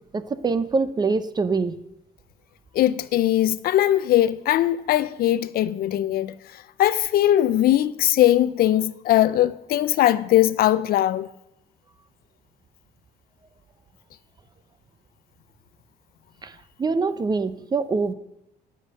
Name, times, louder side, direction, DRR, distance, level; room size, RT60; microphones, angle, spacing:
voice 1, 0.1-1.8 16.4-16.5 16.8-18.1, right 4 dB, 25° right, 0.6 m, -24 dB
voice 2, 2.7-6.3 6.8-11.3, left 13 dB, 65° left, 0.5 m, -20 dB
9.9 x 8.1 x 6.4 m
cardioid pair, 110°, 17 cm